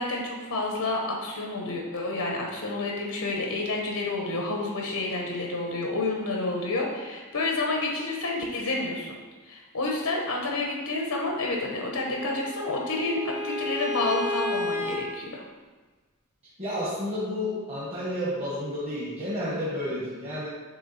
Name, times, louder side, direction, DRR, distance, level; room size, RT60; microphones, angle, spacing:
voice 1, 0.0-9.2 9.4-15.4, left 2 dB, 80° left, -1 dB, 1.0 m, -29 dB
Bowed string instrument, 11.9-15.0, left 2 dB, 10° right, 0.6 m, -32 dB
voice 2, 16.6-20.5, left 1 dB, 30° right, -8 dB, 1.2 m, -31 dB
7.1 x 3.3 x 4.2 m, 1.3 s
head